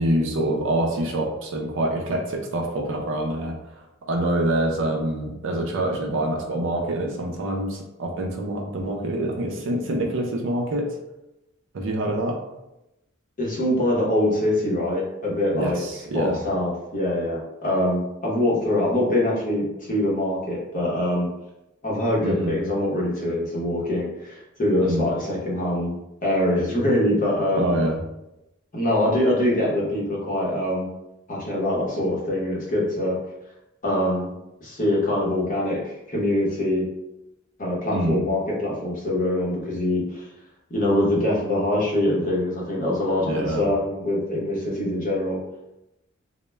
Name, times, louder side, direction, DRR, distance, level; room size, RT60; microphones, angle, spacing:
voice 1, 0.0-3.5 4.1-10.9 11.7-12.4 15.5-16.4 22.2-22.6 24.8-25.0 27.5-28.0 37.9-38.2 43.3-43.7, right 1 dB, 65° right, 1 dB, 0.5 m, -25 dB
voice 2, 13.4-15.8 16.1-21.3 21.8-25.9 26.2-27.7 28.7-30.9 31.3-33.2 33.8-34.3 34.6-36.8 37.6-40.2 40.7-45.4, left 1 dB, 40° left, -4 dB, 0.7 m, -24 dB
2.1 x 2.1 x 3.1 m, 0.90 s
head